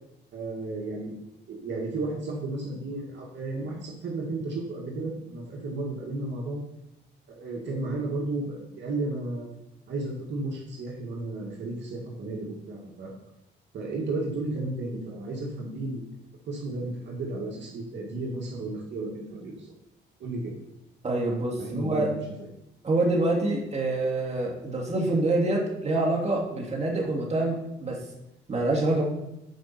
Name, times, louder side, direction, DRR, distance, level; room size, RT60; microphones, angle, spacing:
voice 1, 0.3-1.2 1.5-6.6 7.3-9.5 9.9-13.1 13.7-16.1 16.5-19.7 20.2-20.5 21.6-22.2, right 2 dB, 65° right, -2 dB, 2.1 m, -33 dB
voice 2, 21.0-22.1 22.8-28.0 28.5-29.0, right 2 dB, 35° right, -1 dB, 2.8 m, -26 dB
12.5 x 5.3 x 4.4 m, 0.89 s
cardioid pair, 90°, 20 cm